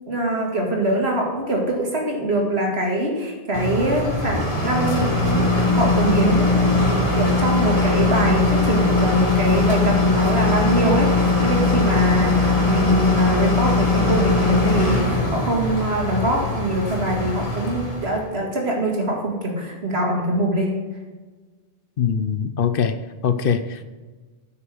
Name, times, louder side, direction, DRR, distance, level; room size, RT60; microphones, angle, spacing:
voice 1, 0.0-6.8 7.2-20.8, right 1 dB, 85° right, 0 dB, 2.5 m, -23 dB
sound 1, 3.5-18.2, left 3 dB, 35° left, 2.0 m, -20 dB
voice 2, 22.0-23.8, left 7 dB, 65° left, 11 dB, 0.9 m, -22 dB
9.3 x 5.8 x 7.8 m, 1.3 s
omnidirectional pair, 1.1 m